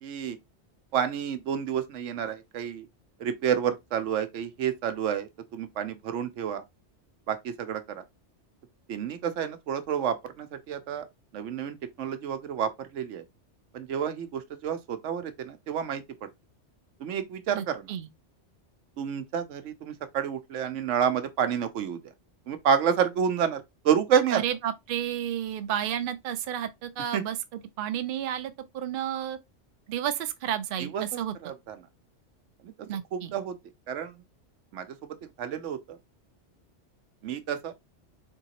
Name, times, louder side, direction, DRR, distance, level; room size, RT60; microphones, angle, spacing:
voice 1, 0.0-0.4 0.9-2.9 3.2-6.6 7.3-8.0 8.9-11.1 11.3-13.2 13.7-16.3 17.0-17.9 19.0-22.0 22.5-24.4 27.1-27.2 30.8-31.0 31.4-31.8 32.6-32.7 33.1-33.6 33.9-34.2 34.7-34.9 35.4-36.0 37.2-37.7, right 8 dB, 85° right, 1.0 m, -29 dB
voice 2, 17.5-18.1 24.3-29.4 29.9-31.3 32.9-33.3, right 10 dB, 60° right, 0.7 m, -32 dB
3.8 x 3.5 x 2.9 m
omnidirectional pair, 1.2 m